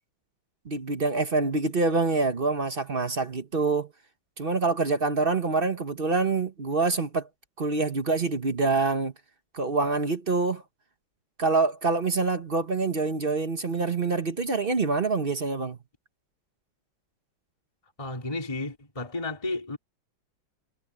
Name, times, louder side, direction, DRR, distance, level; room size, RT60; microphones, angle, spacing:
voice 1, 0.6-3.9 4.4-7.3 7.6-9.1 9.5-10.6 11.4-15.8, right 3 dB, 35° right, 0.9 m, -26 dB
voice 2, 18.0-19.8, left 2 dB, 15° left, 2.6 m, -32 dB
omnidirectional pair, 2.2 m